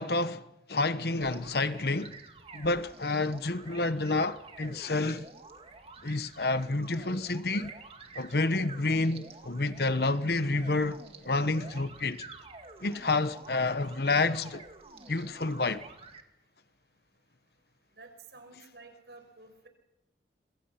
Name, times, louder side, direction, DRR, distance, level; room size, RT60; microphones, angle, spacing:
voice 1, 0.0-2.2 2.5-5.3 6.0-7.8 8.1-11.0 11.2-12.3 12.8-14.6 15.1-15.8, left 3 dB, 60° left, 1.1 m, -29 dB
sound 1, 1.2-16.2, right 3 dB, 30° right, 2.1 m, -49 dB
voice 2, 18.0-19.7, right 3 dB, 70° right, 5.7 m, -51 dB
26.5 x 25.0 x 5.8 m
head